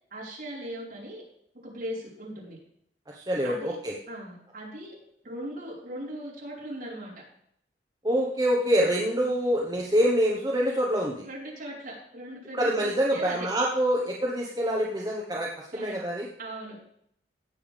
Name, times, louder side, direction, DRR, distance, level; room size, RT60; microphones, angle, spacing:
voice 1, 0.1-1.2 1.6-2.6 3.4-3.8 4.1-4.9 5.2-7.1 11.2-13.5 15.7-16.0 16.4-16.9, right 1 dB, 50° right, -5 dB, 4.9 m, -39 dB
voice 2, 3.1-3.9 8.0-11.2 12.6-16.3, equal, 20° right, -3 dB, 1.2 m, -26 dB
17.0 x 7.1 x 3.5 m, 0.69 s
head